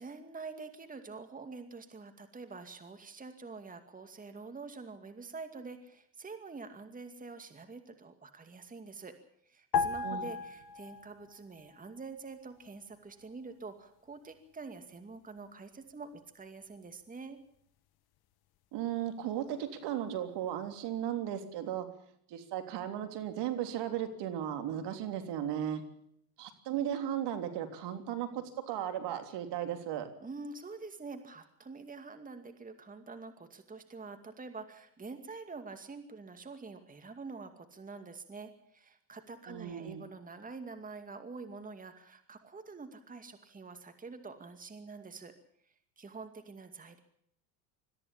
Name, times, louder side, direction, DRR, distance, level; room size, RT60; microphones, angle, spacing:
voice 1, 0.0-9.1 9.4-17.4 30.2-45.3 46.0-47.0, right 4 dB, 15° right, 7 dB, 2.3 m, -46 dB
sound 1, 9.7-11.4 11.6-11.9, left 5 dB, 50° left, 1.6 m, -34 dB
voice 2, 18.7-21.9 22.3-25.8 26.4-30.1 39.5-40.0, right 10 dB, 55° right, 7 dB, 3.4 m, -36 dB
22.0 x 14.5 x 8.7 m, 0.69 s
hypercardioid pair, 85°, 48 cm